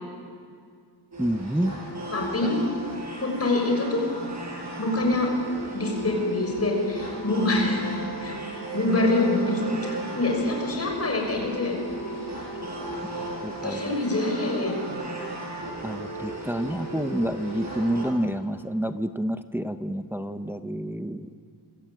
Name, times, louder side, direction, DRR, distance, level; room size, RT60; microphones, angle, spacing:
sound 1, 1.1-18.1, right 2 dB, 40° right, 7.7 m, -35 dB
voice 1, 1.2-1.7 13.4-13.9 15.8-21.3, right 1 dB, 5° right, 8 dB, 0.7 m, -28 dB
voice 2, 2.1-2.5 3.2-4.0 4.8-5.3 5.7-7.8 8.2-8.4 8.7-11.8 13.6-14.7, left 2 dB, 35° left, 1 dB, 6.4 m, -25 dB
26.5 x 24.5 x 9.1 m, 2.2 s
wide cardioid pair, 170°, 42 cm